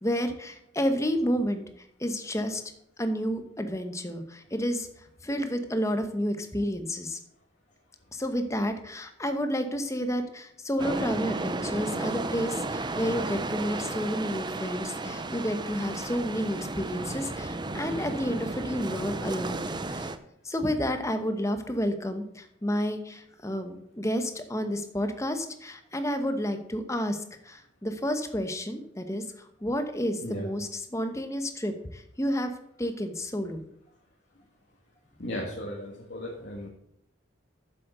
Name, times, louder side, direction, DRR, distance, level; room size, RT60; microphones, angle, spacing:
voice 1, 0.0-1.6 2.0-2.6 3.0-4.9 5.2-7.2 8.1-19.6 19.9-20.1 20.4-32.5 32.8-33.6, equal, 15° left, 7 dB, 1.0 m, -30 dB
sound 1, 10.8-20.2, right 2 dB, 20° right, 0.5 m, -33 dB
voice 2, 35.2-36.7, left 1 dB, 60° left, -2 dB, 1.6 m, -36 dB
7.6 x 7.5 x 6.8 m, 0.76 s
head